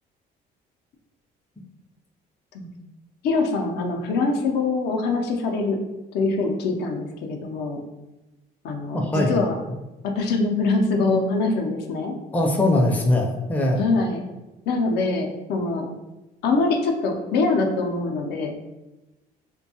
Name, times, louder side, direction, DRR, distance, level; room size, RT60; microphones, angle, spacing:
voice 1, 3.2-5.8 6.1-7.8 8.6-9.6 10.0-12.1 13.7-14.3 14.7-15.9 16.4-18.5, left 3 dB, 75° left, 3 dB, 0.5 m, -24 dB
voice 2, 8.9-9.4 12.3-13.8, left 1 dB, 10° left, 1 dB, 0.4 m, -21 dB
2.6 x 2.2 x 2.7 m, 1.0 s
cardioid pair, 110°, 17 cm